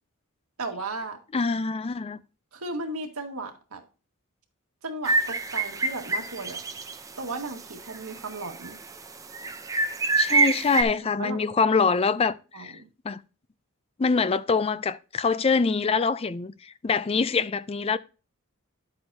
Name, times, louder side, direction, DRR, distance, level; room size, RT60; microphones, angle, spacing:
voice 1, 0.6-1.2 2.5-3.8 4.8-6.6 7.2-8.8 11.2-11.5 12.5-12.9, right 2 dB, 85° right, 1.8 m, -35 dB
voice 2, 1.3-2.2 10.2-12.8 13.0-13.2 14.0-18.0, left 4 dB, 25° left, 0.4 m, -25 dB
sound 1, 5.0-7.0 7.3-7.4 7.9-8.7 9.3-10.8, right 3 dB, 15° right, 0.6 m, -26 dB
10.5 x 7.9 x 2.8 m
head